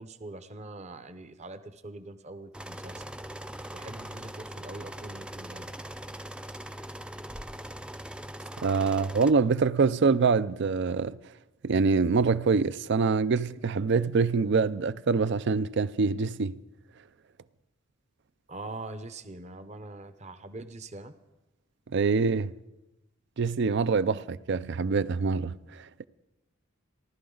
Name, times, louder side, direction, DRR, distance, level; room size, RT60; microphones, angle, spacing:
voice 1, 0.0-3.0 3.7-5.7 8.4-8.5 18.5-21.1 24.1-24.3, right 2 dB, 35° right, 0.8 m, -43 dB
sound 1, 2.5-9.3, right 1 dB, 5° right, 0.4 m, -41 dB
voice 2, 8.6-11.2 11.6-16.6 21.9-22.5 23.4-26.1, right 4 dB, 60° right, 0.5 m, -25 dB
29.5 x 12.0 x 3.9 m
head